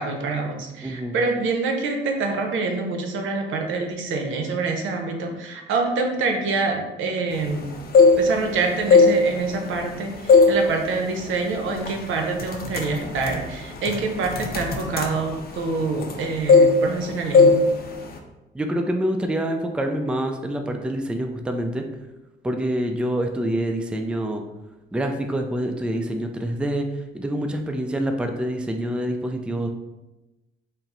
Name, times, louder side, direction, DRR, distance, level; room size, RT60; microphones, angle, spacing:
voice 1, 0.0-7.7 8.2-17.6, right 3 dB, 80° right, 2 dB, 0.7 m, -26 dB
voice 2, 0.8-1.2 18.5-21.8 22.4-24.4 24.9-26.8 27.1-29.7, right 1 dB, 5° right, 4 dB, 0.4 m, -26 dB
sound 1, 7.7-8.5 8.8-9.9 10.3-10.6 11.0-11.2 11.9-12.0 12.3-16.2 16.5-17.0 17.3-17.6 17.9-18.2, left 4 dB, 50° left, 0.6 m, -17 dB
4.4 x 2.0 x 3.8 m, 1.0 s
cardioid pair, 90°, 20 cm